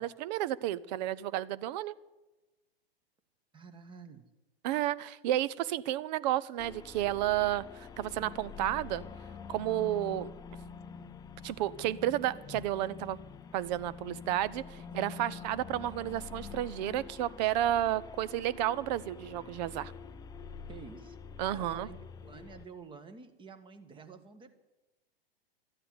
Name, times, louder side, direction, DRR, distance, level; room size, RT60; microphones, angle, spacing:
voice 1, 0.0-1.9 4.6-9.0 9.5-10.3 11.4-13.2 13.5-19.9 21.4-21.9, right 13 dB, 45° right, 19 dB, 0.7 m, -32 dB
voice 2, 3.5-4.3 5.1-5.2 20.7-21.2 21.5-22.0 22.2-24.6, right 5 dB, 15° right, 10 dB, 1.4 m, -49 dB
sound 1, 6.6-22.7, left 6 dB, 10° left, 0.6 m, -46 dB
13.5 x 9.9 x 9.5 m, 1.1 s
hypercardioid pair, 115°, 31 cm